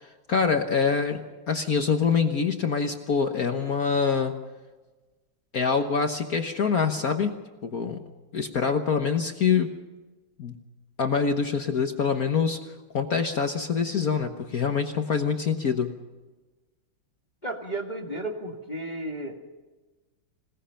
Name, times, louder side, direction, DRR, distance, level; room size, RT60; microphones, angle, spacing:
voice 1, 0.3-1.2 1.5-4.3 5.5-7.3 7.6-8.0 8.3-9.7 10.4-10.6 11.0-12.6 12.9-15.9, left 6 dB, 50° left, 5 dB, 1.5 m, -25 dB
voice 2, 17.4-19.4, right 1 dB, 20° left, 2 dB, 1.9 m, -33 dB
27.0 x 18.5 x 5.7 m, 1.2 s
omnidirectional pair, 2.2 m